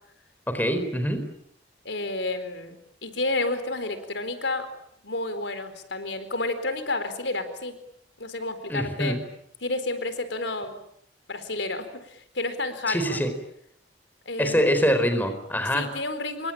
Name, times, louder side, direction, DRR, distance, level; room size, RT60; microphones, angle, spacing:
voice 1, 0.5-1.3 8.7-9.2 12.9-13.3 14.4-15.9, equal, 10° left, 8 dB, 4.2 m, -24 dB
voice 2, 1.8-4.7 5.0-7.8 8.2-9.2 9.6-10.7 11.3-13.2 14.3-14.7 15.7-16.5, left 2 dB, 75° left, 10 dB, 4.3 m, -30 dB
28.0 x 24.0 x 8.8 m, 0.70 s
head